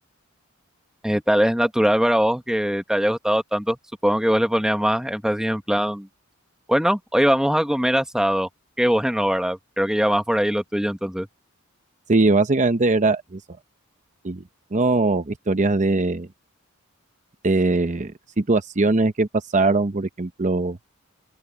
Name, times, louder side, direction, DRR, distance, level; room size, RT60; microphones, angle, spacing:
voice 1, 1.0-3.8 4.0-6.1 6.7-8.5 8.8-11.3, equal, 5° right, 1.2 m, -21 dB
voice 2, 12.1-13.4 14.2-14.4 14.7-16.3 17.4-20.8, right 3 dB, 35° right, 0.8 m, -21 dB
open air
head